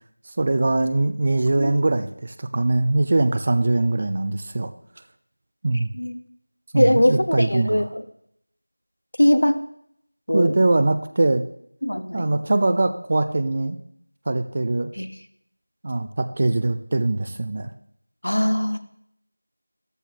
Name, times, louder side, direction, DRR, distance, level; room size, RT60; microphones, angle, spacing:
voice 1, 0.4-4.7 5.6-5.9 6.7-7.8 10.3-11.4 12.1-13.8 14.3-14.9 15.8-17.7, right 2 dB, 25° right, 11 dB, 0.5 m, -22 dB
voice 2, 6.7-8.0 9.2-9.6 10.3-10.5 11.8-12.6 15.0-15.1 18.2-18.8, left 1 dB, 80° left, 10 dB, 1.2 m, -21 dB
13.5 x 12.5 x 2.9 m, 0.71 s
figure-of-eight pair, 175°, 0 cm